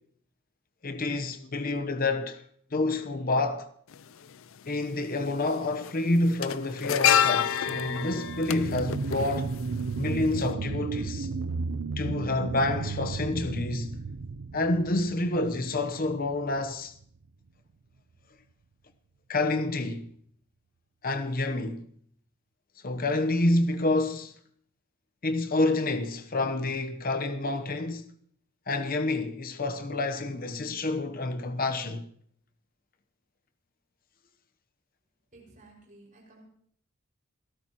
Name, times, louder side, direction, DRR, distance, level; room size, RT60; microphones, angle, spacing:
voice 1, 0.8-2.4 2.7-3.7 4.7-9.5 10.0-11.3 12.0-14.0 14.5-16.9 19.3-20.1 21.0-21.9 22.8-24.3 25.2-28.1 28.7-32.1, left 2 dB, 40° left, 0.9 m, -28 dB
sound 1, 3.9-4.0 5.2-5.5 5.8-10.1 10.3-10.5, left 9 dB, 60° left, 0.5 m, -27 dB
sound 2, 7.5-16.6 17.0-17.1, right 4 dB, 75° right, 0.6 m, -34 dB
voice 2, 35.3-36.5, right 2 dB, 35° right, 5.5 m, -54 dB
27.5 x 13.0 x 3.0 m
head